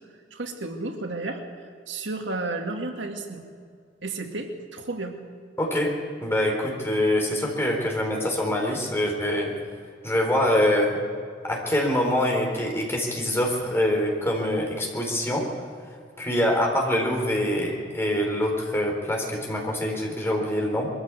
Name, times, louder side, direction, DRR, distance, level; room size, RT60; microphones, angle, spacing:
voice 1, 0.3-1.4 1.9-3.4 4.0-5.1, right 2 dB, 75° right, 3 dB, 2.3 m, -32 dB
voice 2, 5.6-5.9 6.2-9.5 10.0-11.0 11.4-15.6 16.2-20.9, left 1 dB, 15° left, 0 dB, 4.0 m, -25 dB
22.5 x 14.5 x 8.3 m, 2.2 s
head